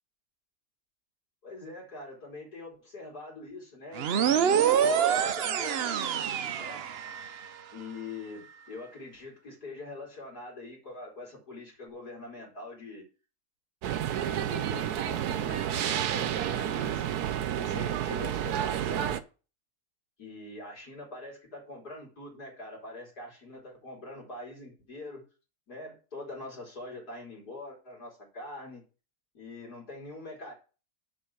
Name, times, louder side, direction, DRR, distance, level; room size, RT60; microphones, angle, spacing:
voice 1, 1.4-5.9 6.6-6.8 7.7-13.1 14.1-17.0 17.6-19.2 20.2-25.2 25.7-28.8 29.3-30.5, left 2 dB, 85° left, -3 dB, 5.0 m, -43 dB
sound 1, 4.0-7.5, right 8 dB, 55° right, 0.7 m, -26 dB
sound 2, 13.8-19.2, right 10 dB, 85° right, 1.3 m, -30 dB
7.8 x 5.4 x 7.3 m, 0.34 s
omnidirectional pair, 1.6 m